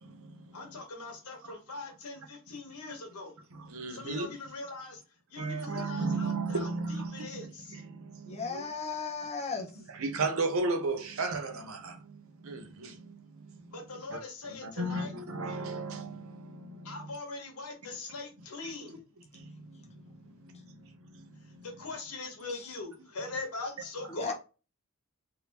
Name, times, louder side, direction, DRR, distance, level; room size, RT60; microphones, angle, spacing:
voice 1, 0.0-0.4 2.8-2.9 3.6-4.3 5.4-8.6 9.8-13.7 14.1-14.2 14.6-16.9 18.6-18.7 19.3-21.7, right 3 dB, 70° right, 0.7 m, -35 dB
voice 2, 0.5-3.3 3.9-5.0 5.3-7.8 13.7-15.1 16.8-19.0 21.4-24.3, left 3 dB, 90° left, 1.2 m, -41 dB
voice 3, 8.3-9.7 24.1-24.3, left 5 dB, 30° left, 0.7 m, -35 dB
3.4 x 2.6 x 2.9 m
head